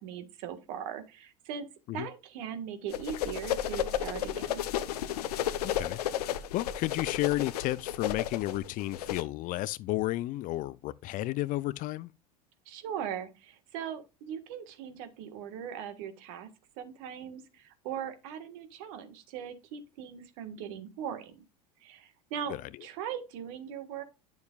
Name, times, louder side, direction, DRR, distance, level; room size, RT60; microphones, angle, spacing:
voice 1, 0.0-1.7 1.9-4.6 12.6-16.5 16.8-21.3 21.8-22.5 22.8-24.0, right 8 dB, 60° right, 1.6 m, -39 dB
sound 1, 2.9-9.2, left 11 dB, 75° left, 0.8 m, -33 dB
voice 2, 5.6-12.1 22.5-22.6, left 17 dB, 45° left, 0.5 m, -32 dB
9.4 x 7.1 x 2.4 m
hypercardioid pair, 85°, 20 cm